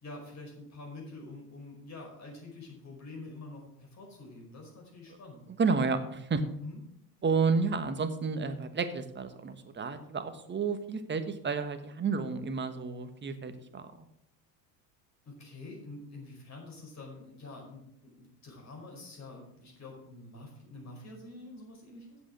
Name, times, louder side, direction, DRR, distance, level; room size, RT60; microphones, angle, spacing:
voice 1, 0.0-5.4 6.6-6.8 15.2-22.2, left 2 dB, 35° left, 0 dB, 4.9 m, -47 dB
voice 2, 5.6-6.4 7.2-13.9, right 4 dB, 25° right, 10 dB, 1.2 m, -31 dB
8.4 x 7.6 x 6.4 m, 0.77 s
hypercardioid pair, 75°, 47 cm